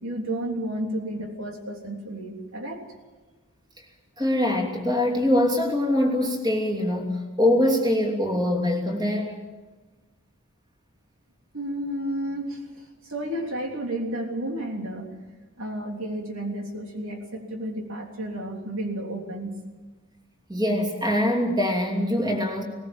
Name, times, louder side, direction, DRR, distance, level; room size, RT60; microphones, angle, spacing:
voice 1, 0.0-2.9 11.5-15.1 15.6-19.5, right 1 dB, 90° right, 2 dB, 3.4 m, -32 dB
voice 2, 4.2-9.3 20.5-22.6, left 1 dB, 20° right, 1 dB, 3.0 m, -23 dB
20.5 x 19.5 x 7.3 m, 1.3 s
head